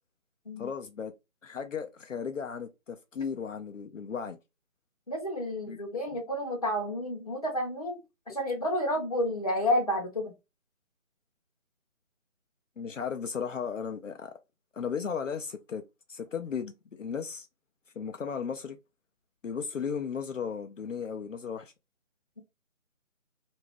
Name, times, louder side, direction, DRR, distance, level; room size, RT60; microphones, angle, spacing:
voice 1, 0.6-1.1 1.4-4.4 5.7-5.8 12.8-14.3 14.7-15.8 16.1-17.5 18.0-18.8 19.4-21.7, left 6 dB, 70° left, 0.5 m, -35 dB
voice 2, 5.1-8.0 8.3-10.3, left 1 dB, 30° left, 0.7 m, -30 dB
2.5 x 2.2 x 3.2 m
figure-of-eight pair, 160°, 41 cm